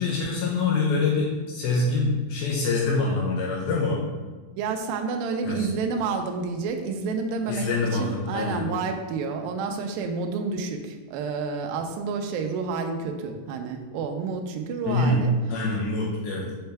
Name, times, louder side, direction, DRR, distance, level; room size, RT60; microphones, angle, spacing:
voice 1, 0.0-4.0 5.5-5.7 7.5-8.6 14.9-15.2 15.5-16.5, left 3 dB, 75° left, -3 dB, 2.4 m, -25 dB
voice 2, 4.6-15.7, right 4 dB, 85° right, 4 dB, 2.0 m, -29 dB
6.6 x 4.4 x 3.4 m, 1.3 s
omnidirectional pair, 4.8 m